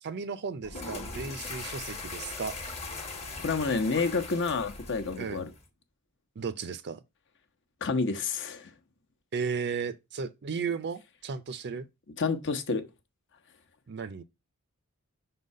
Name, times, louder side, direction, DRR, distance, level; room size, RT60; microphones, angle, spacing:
voice 1, 0.0-2.6 5.2-5.5 6.4-7.0 9.3-11.9 13.9-14.2, right 5 dB, 50° right, 0.5 m, -35 dB
sound 1, 0.6-5.7, left 3 dB, 30° left, 1.2 m, -40 dB
voice 2, 3.4-5.5 7.8-8.7 12.2-12.8, left 4 dB, 55° left, 1.0 m, -29 dB
5.7 x 3.9 x 5.3 m
head